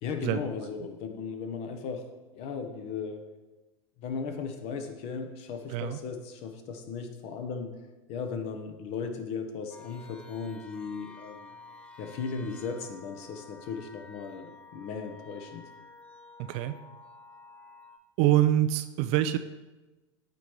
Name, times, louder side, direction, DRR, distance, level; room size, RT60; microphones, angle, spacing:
voice 1, 0.0-2.1 2.3-3.2 4.0-7.8 8.1-11.5 12.0-15.7, left 5 dB, 40° left, 6 dB, 1.0 m, -36 dB
sound 1, 9.7-18.0, left 3 dB, 5° left, 0.7 m, -51 dB
voice 2, 18.2-19.4, right 13 dB, 40° right, 10 dB, 0.4 m, -25 dB
13.5 x 4.6 x 3.2 m, 1.2 s
figure-of-eight pair, 90°, 16 cm